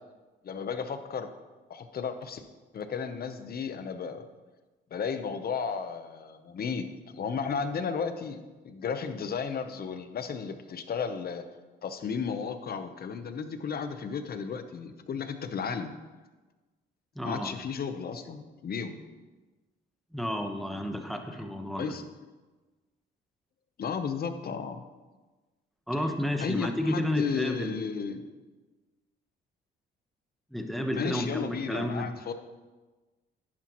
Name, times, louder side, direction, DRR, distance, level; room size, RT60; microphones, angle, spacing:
voice 1, 0.4-1.3 1.7-2.4 2.7-4.3 4.9-11.4 11.8-15.9 17.2-19.0 21.8-22.0 23.8-24.8 26.4-28.2 30.9-32.3, left 6 dB, 50° left, 9 dB, 0.9 m, -34 dB
voice 2, 17.1-17.5 20.1-21.9 25.9-27.8 30.5-32.1, equal, ahead, 5 dB, 1.1 m, -31 dB
10.5 x 9.9 x 3.1 m, 1.2 s
cardioid pair, 90°, 20 cm